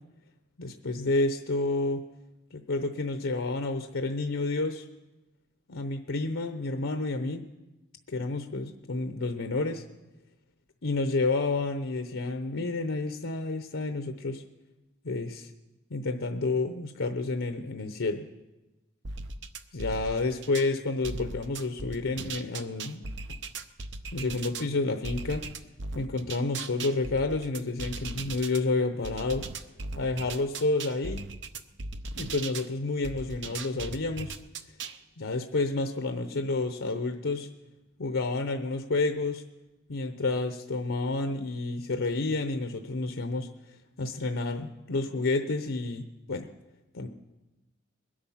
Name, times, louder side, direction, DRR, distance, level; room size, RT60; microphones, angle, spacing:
voice 1, 0.6-2.0 2.5-4.9 5.7-7.5 8.1-9.8 10.8-14.4 15.0-15.5 15.9-18.3 19.7-23.1 24.1-25.5 25.9-29.5 30.0-31.3 32.2-34.4 35.2-37.5 38.0-39.4 39.9-46.5 46.9-47.1, left 3 dB, 80° left, 7 dB, 0.8 m, -30 dB
sound 1, 19.0-20.7 21.0-24.7 25.0-28.6 29.0-32.7 33.0-35.0, right 3 dB, 60° right, 0.7 m, -38 dB
21.0 x 8.7 x 5.7 m, 1.1 s
head